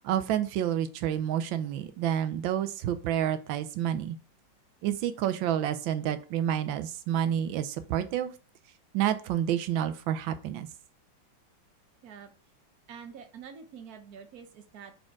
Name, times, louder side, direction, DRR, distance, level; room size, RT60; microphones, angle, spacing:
voice 1, 0.0-4.2 4.8-8.3 8.9-10.7, right 10 dB, 90° right, 11 dB, 1.4 m, -29 dB
voice 2, 12.9-15.1, right 7 dB, 60° right, 7 dB, 1.2 m, -47 dB
5.0 x 4.2 x 4.6 m, 0.37 s
omnidirectional pair, 2.0 m